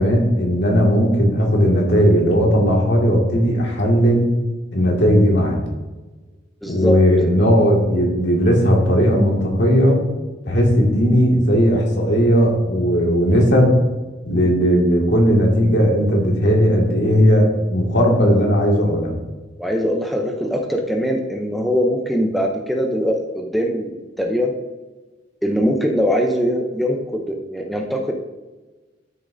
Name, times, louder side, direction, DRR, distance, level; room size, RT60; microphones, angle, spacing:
voice 1, 0.0-4.3 4.7-5.6 6.7-10.0 10.4-13.8 14.3-19.1, equal, 65° left, -1 dB, 1.9 m, -16 dB
voice 2, 6.6-6.9 19.6-24.5 25.4-28.1, equal, ahead, 1 dB, 0.6 m, -22 dB
12.0 x 6.5 x 2.6 m, 1.2 s
head